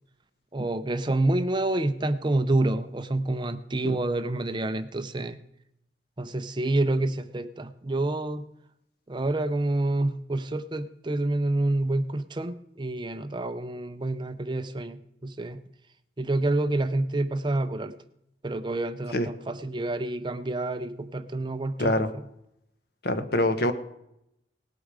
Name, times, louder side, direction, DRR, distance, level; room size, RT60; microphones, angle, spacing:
voice 1, 0.5-5.4 6.2-8.4 9.1-15.6 16.2-18.0 18.4-22.0, right 2 dB, 25° right, 11 dB, 0.6 m, -28 dB
voice 2, 21.8-22.1 23.0-23.7, left 1 dB, 60° left, 9 dB, 1.1 m, -24 dB
18.5 x 8.4 x 4.9 m, 0.80 s
head